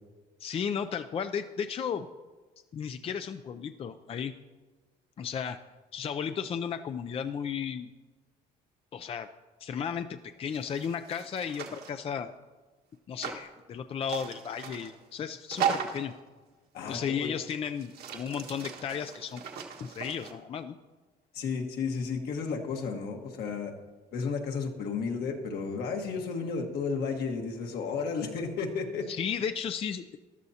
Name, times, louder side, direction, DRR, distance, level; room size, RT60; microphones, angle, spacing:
voice 1, 0.4-2.1 2.7-4.3 5.2-5.6 5.9-7.9 8.9-9.3 9.6-12.3 13.1-16.1 16.9-19.4 19.8-20.7 29.1-30.2, left 7 dB, 35° left, 9 dB, 0.4 m, -34 dB
sound 1, 10.5-12.0 13.2-13.4 14.0-15.0 15.5-16.1 16.9-17.0 17.3-20.3, right 8 dB, 70° right, 1.6 m, -36 dB
voice 2, 16.7-17.3 21.3-23.7 24.1-29.0, left 5 dB, 70° left, 3 dB, 1.5 m, -33 dB
14.0 x 12.0 x 2.8 m, 1.3 s
cardioid pair, 110°, 17 cm